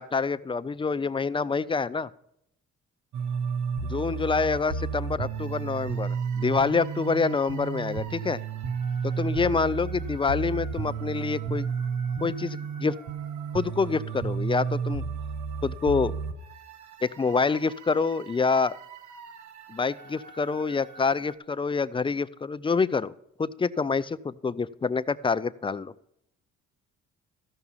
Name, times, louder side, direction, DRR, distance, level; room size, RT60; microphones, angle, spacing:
voice 1, 0.0-2.1 3.8-8.4 9.0-11.7 12.2-12.9 13.5-15.0 15.6-16.1 17.0-18.8 19.7-23.1 23.4-25.9, left 4 dB, 20° left, 15 dB, 0.4 m, -27 dB
sound 1, 3.1-21.3, right 6 dB, 70° right, 1.3 m, -33 dB
14.0 x 5.9 x 5.6 m, 0.78 s
cardioid pair, 90°, 30 cm